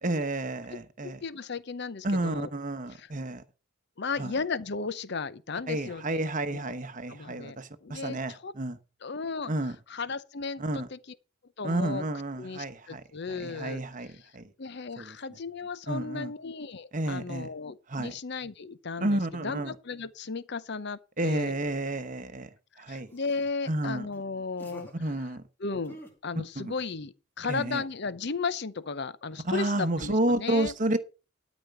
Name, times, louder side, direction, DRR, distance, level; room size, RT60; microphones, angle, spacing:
voice 1, 0.0-1.2 2.0-3.4 4.2-4.3 5.7-8.8 9.5-9.8 10.6-10.9 11.6-14.4 15.0-15.2 15.9-16.3 16.9-17.5 17.9-18.1 19.0-19.7 21.2-22.5 22.8-23.1 23.7-24.1 25.0-25.4 26.6-26.7 27.5-27.8 29.4-31.0, right 1 dB, 40° right, 1.0 m, -31 dB
voice 2, 1.0-2.5 2.9-3.1 4.0-6.2 6.5-6.6 7.1-8.5 9.0-9.5 9.9-11.2 11.6-12.0 12.4-13.8 14.6-21.5 22.9-24.9 25.6-26.0 26.2-30.7, left 4 dB, 55° left, 0.7 m, -35 dB
sound 1, 21.5-22.2 23.1-23.5 24.1-24.2 24.6-24.9 25.8-26.1, right 1 dB, 10° left, 3.3 m, -49 dB
12.5 x 5.2 x 6.9 m
head